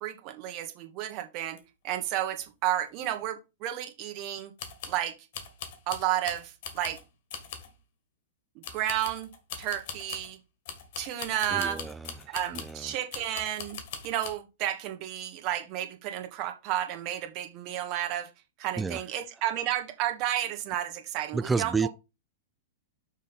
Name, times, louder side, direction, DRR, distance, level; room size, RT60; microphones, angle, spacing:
voice 1, 0.0-1.6 1.8-4.5 4.9-5.1 5.9-7.0 8.5-9.3 9.6-10.4 11.0-11.8 12.3-13.8 14.0-18.3 18.6-21.9, right 12 dB, 45° right, 1.5 m, -32 dB
sound 1, 1.6-1.7 1.9-2.0 2.4-2.5 3.0-3.1 4.6-5.0 5.3-7.0 7.3-7.7 8.6-10.3 10.7-12.8 13.1-14.3, left 7 dB, 60° left, 1.8 m, -41 dB
voice 2, 11.5-13.0 18.8-19.0 21.3-21.9, right 4 dB, 10° right, 0.4 m, -31 dB
6.4 x 3.6 x 5.8 m
hypercardioid pair, 110°, 0 cm